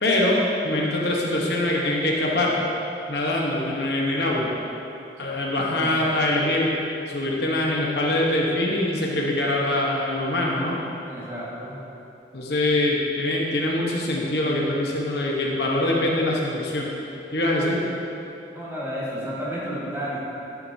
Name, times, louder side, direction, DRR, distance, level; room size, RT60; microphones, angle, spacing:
voice 1, 0.0-2.5 3.1-4.5 5.2-6.8 7.1-10.8 12.3-16.9 17.3-17.8, left 1 dB, 70° left, -2 dB, 1.1 m, -23 dB
voice 2, 5.5-6.1 11.0-11.8 18.5-20.2, equal, 15° right, -8 dB, 1.7 m, -32 dB
11.0 x 7.7 x 2.8 m, 2.9 s
head